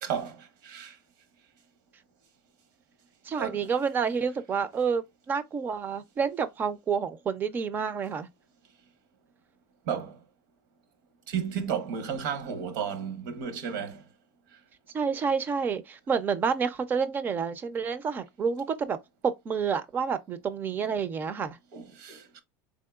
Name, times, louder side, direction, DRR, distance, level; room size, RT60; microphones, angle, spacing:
voice 1, 0.0-1.0 3.3-3.7 9.9-10.2 11.3-14.0 21.7-22.4, right 7 dB, 75° right, 0.9 m, -33 dB
voice 2, 3.3-8.3 14.9-19.0 19.2-21.6, right 6 dB, 20° right, 0.4 m, -29 dB
3.6 x 3.6 x 2.3 m
supercardioid pair, 170°, 10 cm